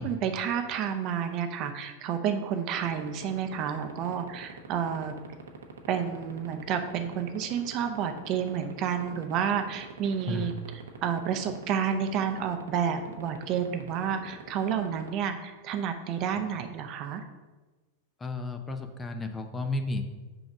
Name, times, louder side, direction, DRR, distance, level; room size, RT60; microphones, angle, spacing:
voice 1, 0.0-5.1 5.9-17.2, right 8 dB, 45° right, 7 dB, 0.6 m, -30 dB
sound 1, 2.8-15.1, right 8 dB, 85° right, 0.8 m, -42 dB
voice 2, 18.2-20.0, left 2 dB, 20° left, 6 dB, 0.6 m, -32 dB
4.9 x 4.0 x 5.9 m, 1.2 s
hypercardioid pair, 110°, 0 cm